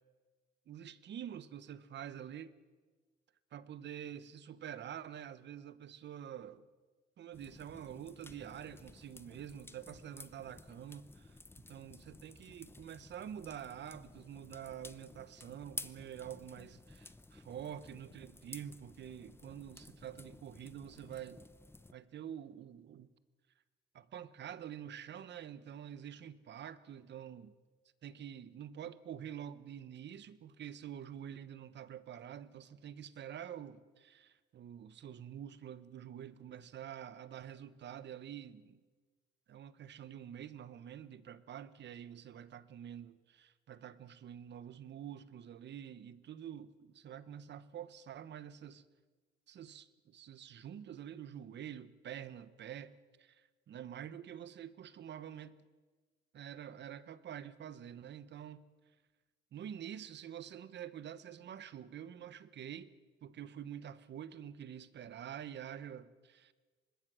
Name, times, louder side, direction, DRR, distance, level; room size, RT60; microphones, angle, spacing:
voice 1, 0.7-2.5 3.5-6.7 7.2-21.5 21.9-23.1 23.9-27.6 28.0-38.8 39.5-48.8 49.5-55.6 56.3-58.6 59.5-62.9 63.2-66.5, right 9 dB, 60° right, 1.1 m, -47 dB
sound 1, 7.3-21.9, left 2 dB, 10° left, 0.8 m, -53 dB
24.5 x 20.0 x 6.3 m
cardioid pair, 90°, 20 cm